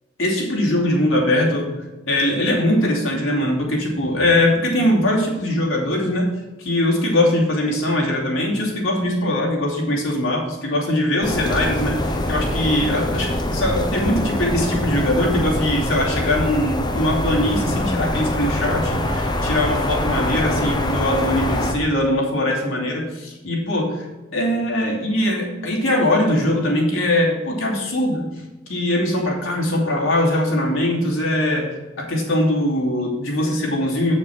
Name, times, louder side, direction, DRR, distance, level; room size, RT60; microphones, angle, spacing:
voice 1, 0.2-1.7 2.1-6.3 6.6-24.1 24.3-28.3 28.7-34.1, left 1 dB, 80° left, -2 dB, 2.6 m, -21 dB
sound 1, 11.2-21.7, left 1 dB, 20° left, 0.9 m, -24 dB
7.1 x 6.9 x 6.2 m, 1.2 s
head